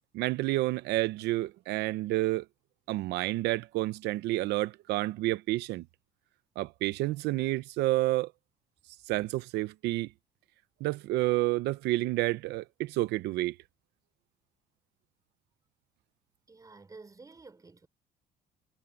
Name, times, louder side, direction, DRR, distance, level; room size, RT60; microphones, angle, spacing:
voice 1, 0.1-2.4 2.9-5.8 6.6-8.3 9.1-10.1 10.8-13.6, right 17 dB, 85° right, 0.7 m, -29 dB
voice 2, 16.5-17.9, right 3 dB, 20° right, 4.1 m, -51 dB
cardioid pair, 110°, 17 cm